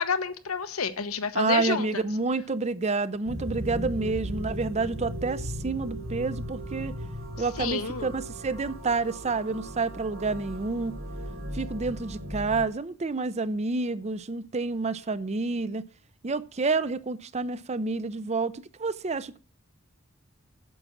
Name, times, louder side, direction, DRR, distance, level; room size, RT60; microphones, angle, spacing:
voice 1, 0.0-2.0 7.6-8.1, left 5 dB, 80° left, 1.1 m, -29 dB
voice 2, 1.3-7.0 7.4-10.9 11.5-15.8 16.2-19.4, right 3 dB, 30° right, 0.5 m, -29 dB
sound 1, 3.3-12.6, equal, 65° right, 3.0 m, -37 dB
9.3 x 7.1 x 7.0 m
head